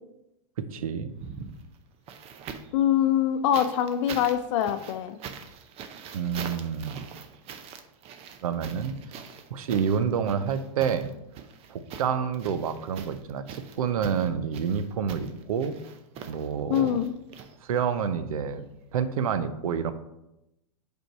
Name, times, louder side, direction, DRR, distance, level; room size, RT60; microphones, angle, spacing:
voice 1, 0.6-1.1 6.1-7.1 8.4-8.9 9.5-11.1 11.7-15.8 16.3-17.0 17.7-18.6 18.9-19.9, right 7 dB, 85° right, 12 dB, 0.6 m, -28 dB
sound 1, 1.1-2.8 3.5-18.0 19.2-19.3, right 6 dB, 35° right, 0.6 m, -43 dB
voice 2, 2.7-5.2 16.7-17.1, left 10 dB, 60° left, 10 dB, 0.6 m, -24 dB
5.2 x 4.5 x 4.6 m, 0.89 s
hypercardioid pair, 120°, 18 cm